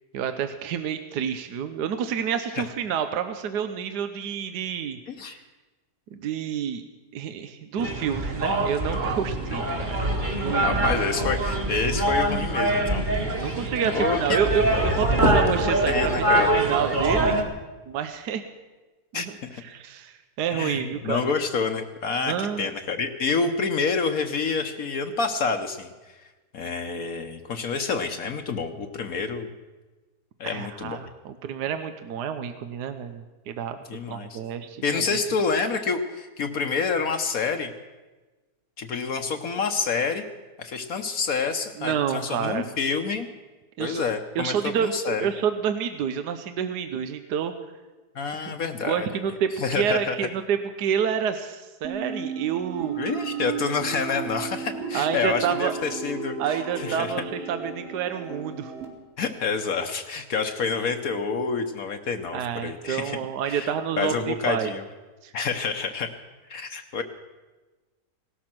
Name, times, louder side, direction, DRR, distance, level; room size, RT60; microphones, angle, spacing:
voice 1, 0.1-5.0 5.3-5.4 6.1-6.8 7.1-11.1 13.4-17.4 17.9-18.4 19.1-21.3 22.2-22.7 30.4-33.8 34.1-35.2 41.8-42.7 43.8-44.0 44.3-47.5 48.4-48.5 48.8-53.0 54.9-55.7 56.4-58.7 62.3-64.7 65.2-65.3, right 8 dB, 80° right, 9 dB, 1.4 m, -29 dB
voice 2, 5.1-5.4 10.6-13.1 13.3-14.4 15.9-16.6 19.1-19.6 20.5-25.9 26.5-29.5 30.4-31.0 33.9-34.4 34.8-37.7 38.8-40.2 40.6-43.3 43.8-45.3 48.1-49.1 49.6-50.1 53.0-57.1 59.2-63.2 63.4-63.7 64.0-64.8 65.3-66.1 66.5-67.0, left 5 dB, 60° left, 6 dB, 1.3 m, -28 dB
sound 1, 7.8-17.4, right 1 dB, 30° right, 1.7 m, -24 dB
sound 2, 51.8-58.9, right 5 dB, 60° right, 3.1 m, -34 dB
17.5 x 13.0 x 6.0 m, 1.2 s
omnidirectional pair, 1.7 m